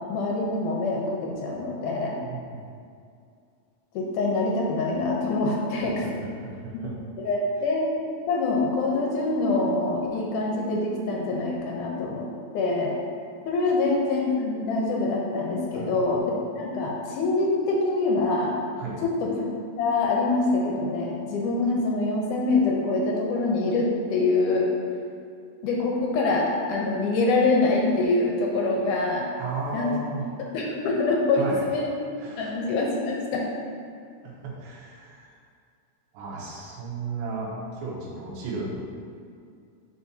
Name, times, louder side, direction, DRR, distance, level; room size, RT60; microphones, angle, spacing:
voice 1, 0.1-2.2 3.9-6.3 7.2-7.9 8.3-12.3 12.5-12.9 13.5-18.5 19.0-19.5 19.8-24.7 25.6-29.3 29.7-29.9 30.5-31.9 32.4-33.4, left 3 dB, 75° left, -2 dB, 1.9 m, -25 dB
voice 2, 2.2-2.6 5.8-5.9 6.2-7.0 15.7-16.2 18.8-19.0 29.4-30.3 31.3-31.7 32.2-32.5 34.2-35.4 36.1-38.8, right 4 dB, 80° right, -4 dB, 3.0 m, -34 dB
9.8 x 4.6 x 2.8 m, 2.3 s
omnidirectional pair, 4.3 m